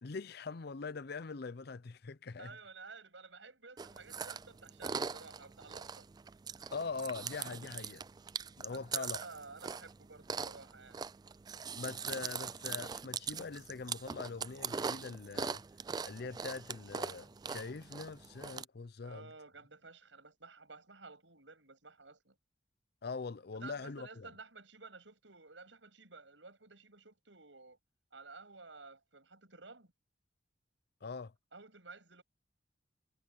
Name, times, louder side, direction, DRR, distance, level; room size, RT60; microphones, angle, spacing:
voice 1, 0.0-2.6 6.7-8.0 8.6-9.2 11.7-15.6 16.0-19.3 23.0-24.3 31.0-31.3, left 4 dB, 60° left, 0.6 m, -43 dB
voice 2, 2.4-6.1 8.7-11.0 19.0-22.4 23.6-27.8 28.1-29.9 31.5-32.2, right 3 dB, 85° right, 7.9 m, -53 dB
Chewing mastication, 3.8-18.6, right 6 dB, 20° right, 0.3 m, -42 dB
head